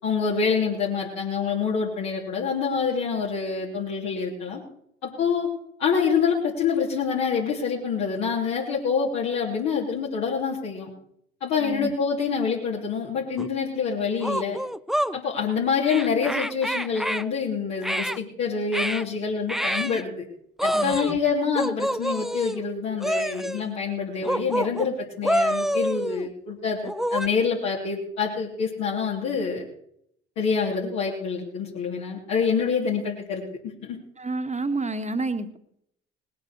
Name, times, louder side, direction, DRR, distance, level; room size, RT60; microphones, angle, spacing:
voice 1, 0.0-4.6 5.0-5.5 5.8-10.9 11.4-14.6 15.1-20.2 20.6-29.7 30.4-33.4 33.8-34.0, left 5 dB, 65° left, -5 dB, 3.1 m, -26 dB
voice 2, 11.6-11.9 20.7-21.2 34.2-35.6, right 2 dB, 25° right, 8 dB, 1.9 m, -29 dB
sound 1, 13.4-13.5 14.2-15.2 15.8-17.2 17.8-18.2 18.7-19.1 19.5-20.0 20.6-21.2 21.6-22.6 23.0-23.6 24.2-24.9 25.2-26.3 26.8-27.3, equal, ahead, 0.6 m, -27 dB
19.5 x 8.2 x 6.7 m, 0.71 s
hypercardioid pair, 50°, 30 cm